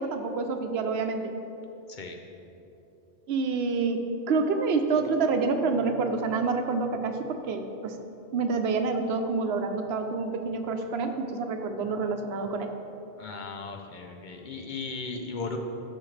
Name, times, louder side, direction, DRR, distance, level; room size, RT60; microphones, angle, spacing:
voice 1, 0.0-1.3 3.3-8.0 8.3-12.7, right 4 dB, 85° right, 6 dB, 0.9 m, -28 dB
voice 2, 13.2-15.6, left 4 dB, 55° left, 3 dB, 0.8 m, -36 dB
11.0 x 6.4 x 3.2 m, 2.9 s
omnidirectional pair, 1.0 m